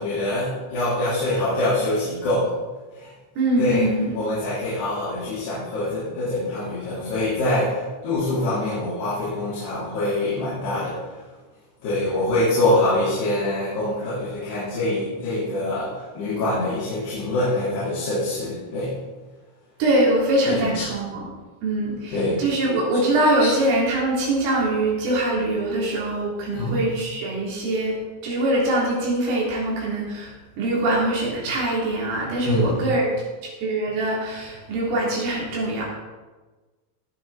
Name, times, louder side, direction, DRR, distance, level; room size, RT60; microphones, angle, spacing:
voice 1, 0.0-2.5 2.9-3.1 3.6-3.9 4.1-11.1 11.8-18.9 20.5-20.9 22.1-22.5 23.4-23.5 26.5-26.7 32.4-32.9, left 1 dB, 60° left, -11 dB, 5.6 m, -24 dB
voice 2, 3.4-4.1 19.8-21.3 21.6-33.2 33.4-35.8, right 1 dB, 90° right, -4 dB, 6.3 m, -23 dB
18.5 x 8.0 x 4.3 m, 1.3 s
omnidirectional pair, 5.6 m